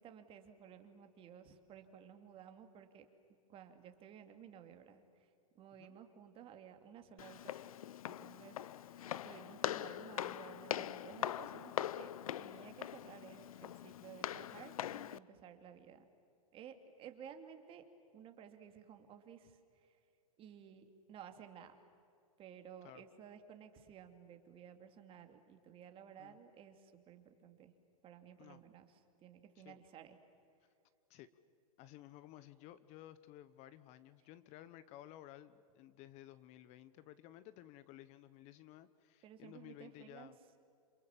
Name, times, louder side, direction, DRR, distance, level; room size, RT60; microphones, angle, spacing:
voice 1, 0.0-3.1 3.5-5.3 5.5-7.6 8.1-12.1 12.4-16.0 16.5-17.9 18.1-20.0 20.4-21.8 22.4-27.7 28.0-30.2 39.2-40.3, right 8 dB, 30° right, 7 dB, 2.6 m, -55 dB
Walk footsteps, 7.2-15.2, left 11 dB, 75° left, 0.7 m, -42 dB
voice 2, 31.8-40.4, left 13 dB, 35° left, 15 dB, 1.0 m, -55 dB
28.0 x 27.5 x 7.4 m, 2.5 s
hypercardioid pair, 125°, 19 cm